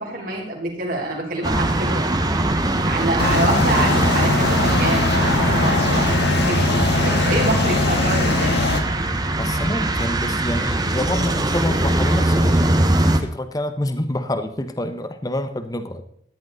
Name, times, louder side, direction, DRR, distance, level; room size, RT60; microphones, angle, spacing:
voice 1, 0.0-2.0 2.9-8.7, right 2 dB, 45° right, -2 dB, 3.6 m, -26 dB
sound 1, 1.4-13.2, right 1 dB, 20° right, 1.0 m, -21 dB
sound 2, 3.2-8.8, left 3 dB, 60° left, 1.5 m, -21 dB
voice 2, 9.4-16.0, left 1 dB, 20° left, 9 dB, 0.8 m, -27 dB
13.5 x 10.5 x 3.9 m, 0.67 s
head